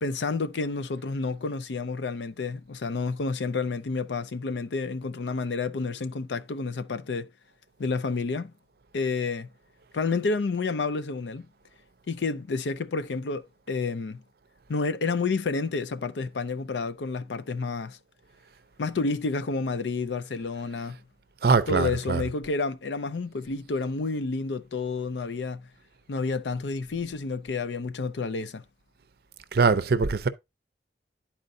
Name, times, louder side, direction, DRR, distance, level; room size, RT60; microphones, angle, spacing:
voice 1, 0.0-7.3 7.8-8.5 8.9-9.5 9.9-11.5 12.1-14.2 14.7-18.0 18.8-21.0 21.7-25.7 26.1-28.6, left 4 dB, 85° left, 0.5 m, -30 dB
voice 2, 21.4-22.2 29.5-30.3, right 4 dB, 60° right, 0.5 m, -22 dB
11.5 x 4.4 x 2.6 m
head